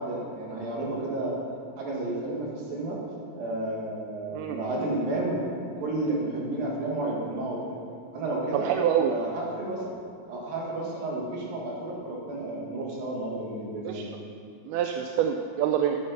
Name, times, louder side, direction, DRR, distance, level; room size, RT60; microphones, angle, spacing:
voice 1, 0.0-1.4 1.8-3.0 3.4-5.4 5.7-7.8 8.1-8.7 9.1-9.9 10.3-14.1, right 2 dB, 70° right, -3 dB, 3.7 m, -31 dB
voice 2, 4.3-4.6 8.5-9.1 13.9-14.0 14.7-16.0, right 9 dB, 85° right, 4 dB, 2.5 m, -26 dB
12.0 x 8.8 x 5.6 m, 2.4 s
omnidirectional pair, 4.3 m